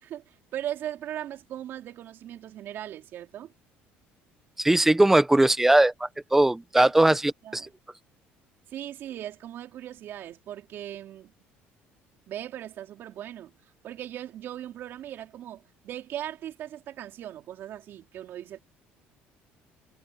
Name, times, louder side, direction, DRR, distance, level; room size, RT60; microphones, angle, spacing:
voice 1, 0.0-3.5 6.8-7.2 7.4-7.7 8.7-11.3 12.3-18.6, right 11 dB, 55° right, 4.3 m, -39 dB
voice 2, 4.6-5.9 6.3-7.2, right 1 dB, 5° right, 1.2 m, -19 dB
cardioid pair, 130°, 4 cm